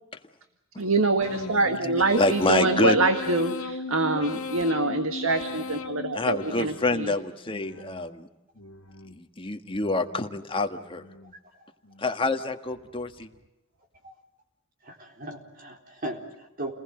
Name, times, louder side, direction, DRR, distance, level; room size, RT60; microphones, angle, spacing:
voice 1, 0.8-7.1, right 2 dB, 80° right, 8 dB, 1.7 m, -25 dB
sound 1, 1.2-7.0 7.5-8.1 8.5-9.2 9.6-10.3 10.7-11.3 11.8-12.4, left 3 dB, 85° left, 1.8 m, -37 dB
voice 2, 2.2-3.0 6.1-8.3 9.1-11.0 12.0-13.3, left 2 dB, 25° left, 6 dB, 1.6 m, -27 dB
voice 3, 14.8-16.7, right 1 dB, 45° right, 2 dB, 4.1 m, -37 dB
29.5 x 20.0 x 7.8 m, 0.94 s
head